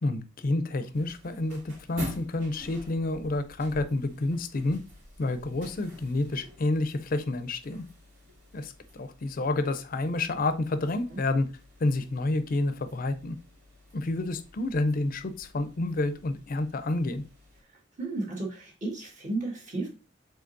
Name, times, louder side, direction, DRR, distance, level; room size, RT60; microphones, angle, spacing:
voice 1, 0.0-4.8 5.2-7.9 8.5-11.5 11.8-13.4 13.9-17.2, left 2 dB, 50° left, 11 dB, 0.5 m, -29 dB
sound 1, 0.9-17.6, left 1 dB, 90° right, 2.8 m, -48 dB
voice 2, 18.0-19.9, right 2 dB, 40° right, -1 dB, 1.7 m, -33 dB
5.1 x 3.9 x 2.6 m, 0.33 s
head